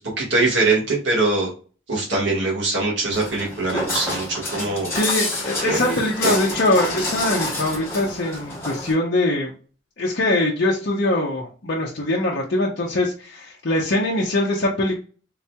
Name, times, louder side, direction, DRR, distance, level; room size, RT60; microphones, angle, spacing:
voice 1, 0.0-1.5 1.9-4.9 5.6-6.3, right 3 dB, 70° right, -3 dB, 1.5 m, -22 dB
Walk footsteps, 3.1-8.9, left 1 dB, 15° left, 1.3 m, -28 dB
voice 2, 4.9-9.5 10.0-15.0, left 1 dB, 60° left, -4 dB, 0.7 m, -22 dB
3.9 x 2.8 x 2.2 m, 0.37 s
head